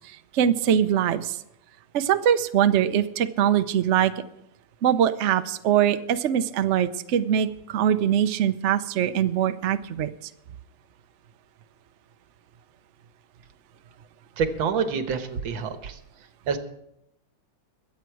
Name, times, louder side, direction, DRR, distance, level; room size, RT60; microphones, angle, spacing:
voice 1, 0.1-1.4 1.9-4.1 4.8-10.1, right 9 dB, 65° right, 10 dB, 0.7 m, -22 dB
voice 2, 14.4-16.0 16.5-16.6, right 6 dB, 85° right, 8 dB, 1.9 m, -27 dB
22.5 x 8.1 x 4.7 m, 0.81 s
omnidirectional pair, 2.1 m